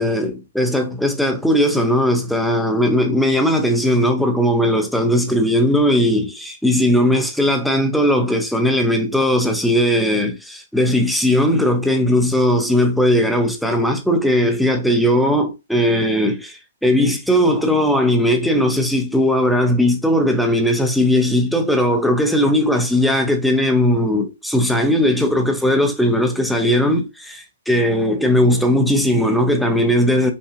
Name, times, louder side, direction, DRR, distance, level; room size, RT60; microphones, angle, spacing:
voice 1, 0.0-30.3, left 1 dB, ahead, 0.5 m, -18 dB
5.4 x 2.7 x 2.5 m
hypercardioid pair, 170°, 0 cm